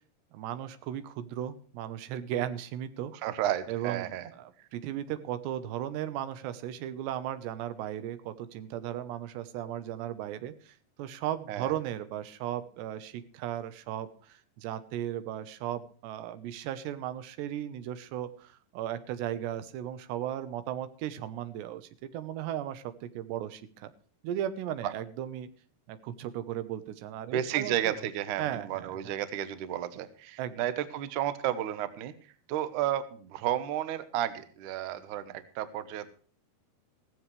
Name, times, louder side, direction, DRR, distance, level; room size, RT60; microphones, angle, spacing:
voice 1, 0.3-3.1 3.7-23.9 24.2-25.5 25.9-28.0 28.4-29.0 30.4-30.6, right 11 dB, 90° right, 12 dB, 3.2 m, -36 dB
voice 2, 3.2-4.3 11.5-11.7 27.3-32.1 32.5-36.1, right 11 dB, 70° right, 12 dB, 2.0 m, -32 dB
16.0 x 15.0 x 3.2 m, 0.42 s
omnidirectional pair, 4.8 m